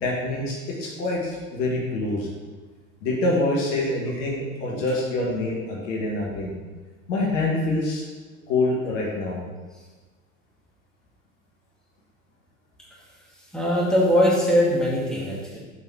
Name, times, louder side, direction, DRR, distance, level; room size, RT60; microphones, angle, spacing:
voice 1, 0.0-2.3 3.0-6.5 7.1-8.0 8.5-9.4, left 2 dB, 60° left, -3 dB, 1.7 m, -25 dB
voice 2, 13.5-15.6, equal, ahead, -7 dB, 2.4 m, -21 dB
6.9 x 5.4 x 4.6 m, 1.3 s
figure-of-eight pair, 75°, 42 cm